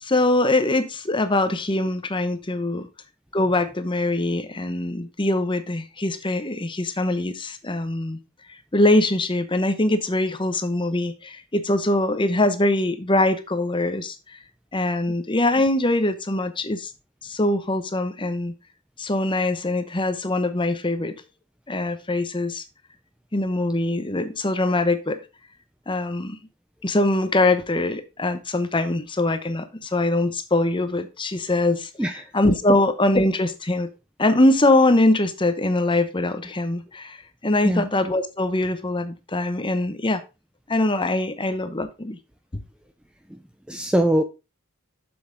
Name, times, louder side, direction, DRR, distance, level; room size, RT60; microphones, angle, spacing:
voice 1, 0.0-2.9 3.3-8.2 8.7-14.4 14.7-16.9 17.2-18.5 19.0-21.1 21.7-22.6 23.3-25.2 25.9-26.4 26.8-33.9 34.2-40.2 40.7-42.2, left 2 dB, 20° left, 0.8 m, -23 dB
voice 2, 43.7-44.2, right 1 dB, 5° right, 0.5 m, -21 dB
7.1 x 7.0 x 3.8 m
head